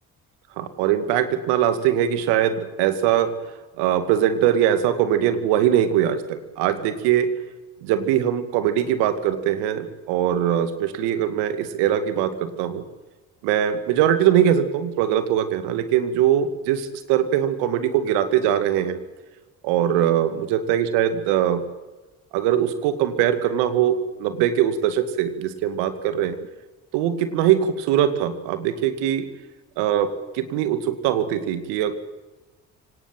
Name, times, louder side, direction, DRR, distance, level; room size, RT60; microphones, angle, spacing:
voice 1, 0.6-3.3 3.8-7.3 7.8-12.8 13.4-19.0 19.6-21.7 22.3-26.4 26.9-29.3 29.8-31.9, right 10 dB, 80° right, 10 dB, 2.5 m, -21 dB
24.5 x 18.5 x 9.1 m, 1.2 s
hypercardioid pair, 55°, 40 cm